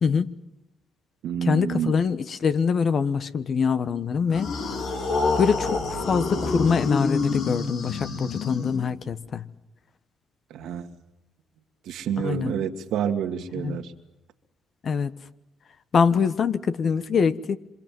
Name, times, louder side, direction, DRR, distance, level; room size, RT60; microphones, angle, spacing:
voice 1, 0.0-0.4 1.5-4.5 5.4-9.4 12.2-12.5 13.6-13.8 14.8-15.1 15.9-17.6, left 6 dB, 55° left, 1.2 m, -24 dB
voice 2, 1.2-2.0 10.5-10.9 11.8-13.9, right 8 dB, 75° right, 2.0 m, -28 dB
sound 1, 4.3-9.1, left 4 dB, 70° left, 3.4 m, -27 dB
27.0 x 25.5 x 7.7 m
supercardioid pair, 60°, 0 cm